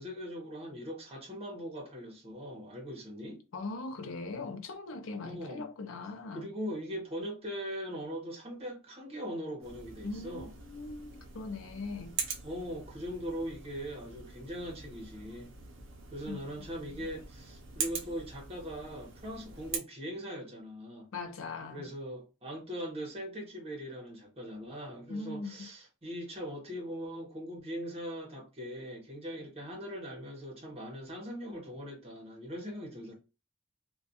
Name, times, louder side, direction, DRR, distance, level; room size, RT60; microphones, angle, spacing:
voice 1, 0.0-3.4 5.2-5.7 6.3-10.5 12.4-15.5 16.1-21.1 21.7-33.1, equal, 30° right, 0.8 m, -40 dB
voice 2, 3.5-6.5 10.0-12.2 16.3-16.4 16.9-17.1 21.1-21.9 25.1-25.7, left 3 dB, 75° left, 0.5 m, -40 dB
sound 1, 9.6-19.8, right 6 dB, 65° right, 0.5 m, -43 dB
2.3 x 2.2 x 2.7 m
head